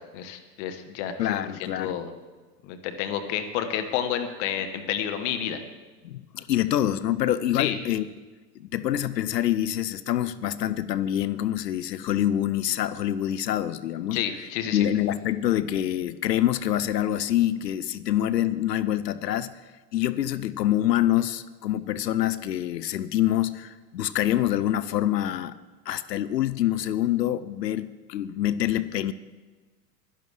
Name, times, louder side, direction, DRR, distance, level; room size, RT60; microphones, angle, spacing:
voice 1, 0.0-1.4 1.8-2.1 2.6-5.6 7.5-7.8 14.1-14.9, left 9 dB, 45° left, 8 dB, 1.3 m, -30 dB
voice 2, 1.2-2.0 6.0-8.1 8.6-14.2 14.7-19.5 19.9-25.6 25.9-29.1, left 12 dB, 75° left, 15 dB, 0.7 m, -26 dB
11.0 x 10.5 x 6.5 m, 1.3 s
hypercardioid pair, 100°, 49 cm